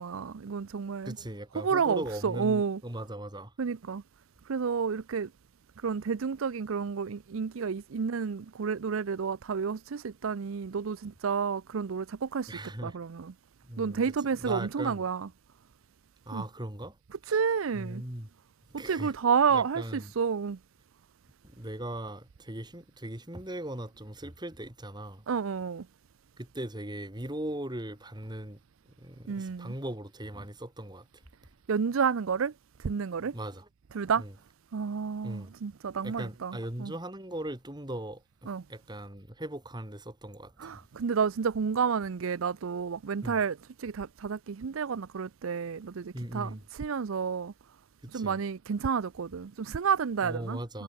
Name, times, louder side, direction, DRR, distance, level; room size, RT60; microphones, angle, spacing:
voice 1, 0.0-1.2 1.6-2.8 3.6-4.0 4.5-5.3 5.8-13.3 13.8-15.3 16.3-16.4 17.3-18.0 18.7-20.6 25.3-25.9 29.3-29.7 31.7-32.5 32.8-33.3 33.9-34.2 34.7-36.9 38.5-38.6 40.6-47.5 48.1-50.8, right 6 dB, 90° right, 0.5 m, -30 dB
voice 2, 1.0-3.5 12.5-13.0 13.7-14.0 14.4-15.0 16.3-17.0 17.2-17.3 17.7-18.3 18.7-19.1 19.5-20.1 21.4-25.2 26.4-28.6 29.0-31.1 33.2-33.7 34.2-34.3 35.2-35.5 36.0-40.8 43.2-43.4 46.1-46.6 48.0-48.4 50.2-50.8, right 1 dB, 20° right, 3.0 m, -39 dB
head